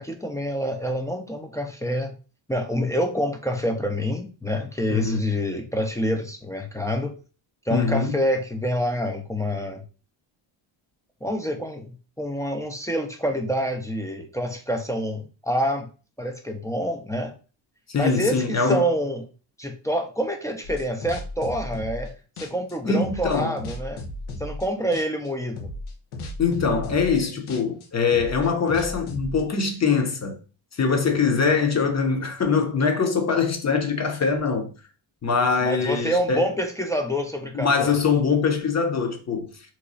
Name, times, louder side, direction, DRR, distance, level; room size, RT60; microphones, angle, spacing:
voice 1, 0.0-2.1 2.5-7.1 7.7-9.8 11.2-15.9 16.2-17.3 18.0-19.2 19.6-22.1 22.4-24.0 24.4-25.7 35.6-38.0, equal, 5° left, 0.4 m, -27 dB
voice 2, 4.9-5.2 7.7-8.2 17.9-18.9 22.9-23.6 26.4-30.4 30.7-34.7 35.2-36.5 37.5-39.5, left 5 dB, 35° left, 0.8 m, -23 dB
sound 1, 20.6-22.1 22.4-24.7 24.9-25.3 25.6-29.4, left 1 dB, 90° left, 0.8 m, -35 dB
3.0 x 2.2 x 3.9 m
cardioid pair, 100°, 48 cm